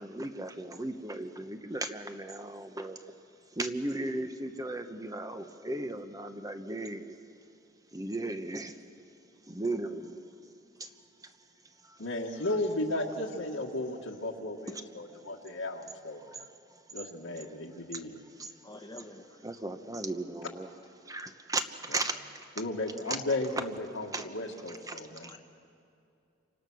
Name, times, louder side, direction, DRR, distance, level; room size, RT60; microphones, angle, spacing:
voice 1, 0.0-3.0 3.6-7.1 7.9-8.7 9.5-10.2 10.8-10.9 18.4-18.5 19.4-20.7 21.1-21.6 21.9-22.2 23.1-23.2 23.6-23.7 24.1-24.3 24.9-25.0, right 2 dB, 20° right, 8 dB, 1.1 m, -35 dB
voice 2, 12.0-16.4 16.9-18.2 21.9-22.0 22.6-25.3, left 2 dB, 75° left, -1 dB, 1.9 m, -35 dB
voice 3, 18.6-19.4 25.1-25.4, left 1 dB, 20° left, -2 dB, 1.3 m, -47 dB
28.5 x 24.5 x 6.4 m, 2.6 s
head